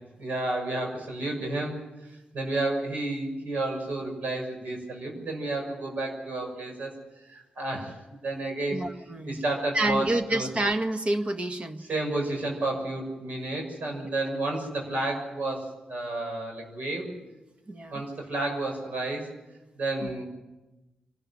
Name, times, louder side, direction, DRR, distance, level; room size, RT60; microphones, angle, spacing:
voice 1, 0.2-1.8 2.3-6.9 7.3-8.0 8.2-8.8 9.2-10.5 11.9-17.1 17.9-19.3 19.8-20.2, right 2 dB, 70° right, 2 dB, 6.3 m, -31 dB
voice 2, 8.7-9.4 9.7-11.8 14.0-14.1 17.7-18.0 20.0-20.1, right 1 dB, 40° right, 7 dB, 1.8 m, -28 dB
24.5 x 12.5 x 9.9 m, 1.1 s
cardioid pair, 55°, 3 cm